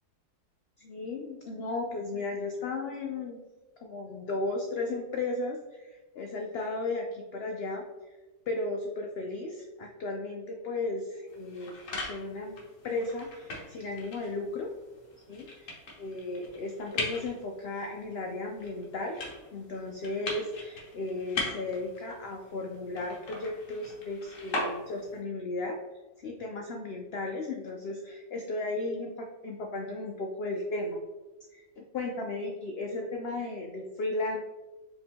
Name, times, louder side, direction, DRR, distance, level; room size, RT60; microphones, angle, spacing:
voice 1, 0.8-3.4 3.8-7.8 8.5-14.7 15.3-19.2 19.5-25.8 26.2-31.0 31.5-34.4, left 2 dB, 90° left, 1 dB, 0.5 m, -35 dB
sound 1, 11.3-25.2, left 2 dB, 60° left, 1.3 m, -40 dB
4.9 x 2.9 x 3.5 m, 1.2 s
omnidirectional pair, 1.6 m